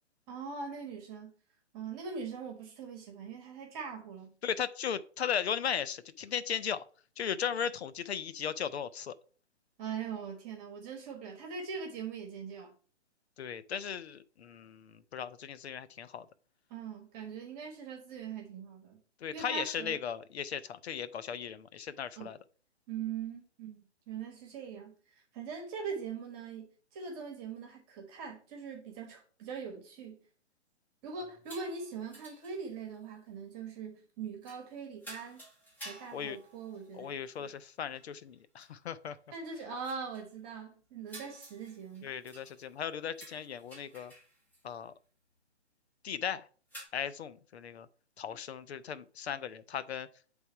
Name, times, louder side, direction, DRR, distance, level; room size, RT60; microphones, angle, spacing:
voice 1, 0.3-1.3 1.7-4.3 9.8-12.7 16.7-19.0 19.3-20.0 22.2-22.3 22.9-30.2 31.0-35.4 35.8-37.5 39.3-42.1, right 6 dB, 20° right, 1.3 m, -42 dB
voice 2, 4.4-6.9 7.2-9.1 13.4-16.3 19.2-22.4 36.1-36.4 37.0-39.2 42.0-44.1 44.6-44.9 46.0-46.5 46.9-47.9 48.2-50.1, left 8 dB, 65° left, 0.7 m, -37 dB
sound 1, 31.4-33.0 34.4-34.7 35.0-37.2 37.6-37.7 37.9-38.1 38.6-38.7 39.1-39.2 39.8-40.3 41.1-42.8 43.1-44.6 46.7-46.8, right 1 dB, 5° left, 1.1 m, -52 dB
8.1 x 3.5 x 4.6 m
hypercardioid pair, 150°, 35 cm